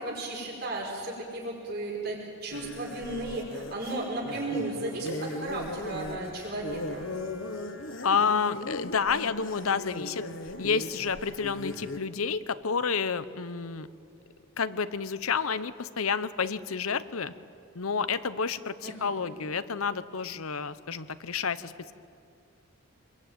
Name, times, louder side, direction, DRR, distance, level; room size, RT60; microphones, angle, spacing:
voice 1, 0.0-7.1 18.8-19.3, right 2 dB, 50° right, -3 dB, 5.4 m, -35 dB
sound 1, 2.5-12.0, left 2 dB, 65° left, 1.5 m, -38 dB
voice 2, 8.0-10.3 10.6-13.9 14.6-17.3 17.7-21.9, left 5 dB, 90° left, 14 dB, 0.9 m, -29 dB
25.5 x 22.0 x 9.1 m, 2.4 s
head